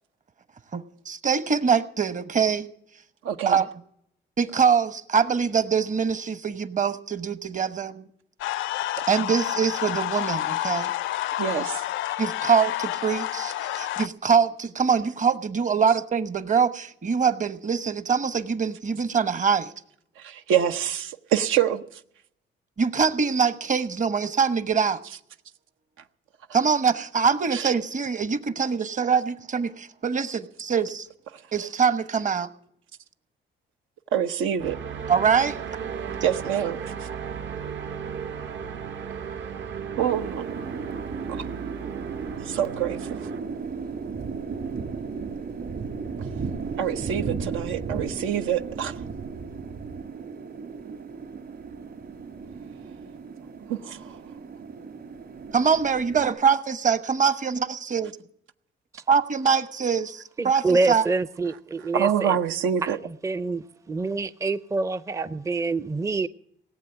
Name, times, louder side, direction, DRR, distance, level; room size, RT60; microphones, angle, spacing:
voice 1, 0.7-2.7 3.5-3.7 4.4-8.1 9.1-10.9 12.2-19.7 22.8-25.0 26.5-31.1 31.5-32.5 35.1-35.6 55.5-58.1 59.1-61.0, right 6 dB, 40° right, 1.1 m, -24 dB
voice 2, 3.2-3.6 11.4-11.8 20.2-21.8 27.5-27.6 34.1-34.8 36.2-36.8 40.0-40.5 42.4-43.0 46.8-48.9 53.8-54.2 61.9-63.0, right 9 dB, 90° right, 0.9 m, -25 dB
sound 1, 8.4-14.1, left 14 dB, 75° left, 0.5 m, -29 dB
sound 2, 34.6-43.4, right 7 dB, 70° right, 1.5 m, -35 dB
sound 3, 40.0-56.3, right 5 dB, 55° right, 3.5 m, -35 dB
voice 3, 60.4-62.4 62.8-66.3, right 3 dB, 15° right, 0.5 m, -27 dB
18.0 x 7.8 x 8.9 m
cardioid pair, 90°, 20 cm